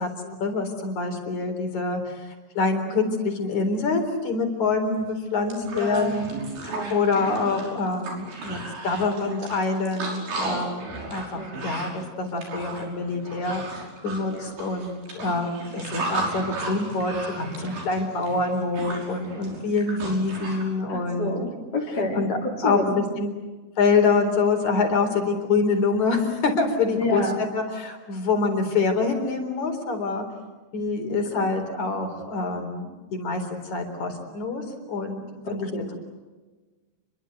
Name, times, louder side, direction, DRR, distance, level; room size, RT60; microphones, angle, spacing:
voice 1, 0.0-6.3 6.6-13.6 14.0-21.4 22.1-22.4 22.6-23.3 23.8-27.2 27.5-30.2 30.7-36.0, left 4 dB, 45° left, 5 dB, 5.1 m, -26 dB
sound 1, 5.0-5.1 5.3-20.6, right 2 dB, 80° right, 7.6 m, -35 dB
voice 2, 5.7-6.2 6.7-7.1 11.3-11.7 14.3-14.6 20.9-22.9 27.0-27.4 31.3-31.5 35.7-36.0, left 1 dB, 25° left, -4 dB, 4.1 m, -29 dB
29.0 x 23.5 x 8.1 m, 1.3 s
omnidirectional pair, 4.6 m